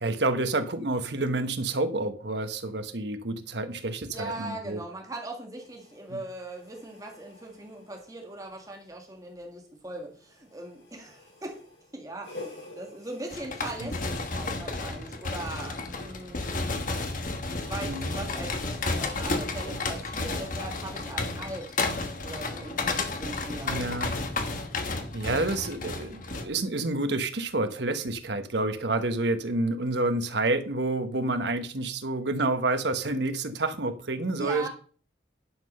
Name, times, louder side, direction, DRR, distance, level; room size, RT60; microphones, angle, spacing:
voice 1, 0.0-4.8 6.1-6.2 13.8-13.9 17.8-18.2 23.6-24.1 25.1-34.7, right 2 dB, 70° right, 8 dB, 1.2 m, -29 dB
voice 2, 4.1-11.6 11.9-16.7 17.5-21.7 22.2-23.8 34.4-34.7, right 2 dB, 20° right, 1 dB, 1.6 m, -40 dB
sound 1, 5.6-14.6, left 2 dB, 80° left, 6.2 m, -49 dB
sound 2, 13.3-26.5, left 3 dB, 45° left, 1.3 m, -32 dB
11.0 x 5.8 x 5.4 m, 0.42 s
head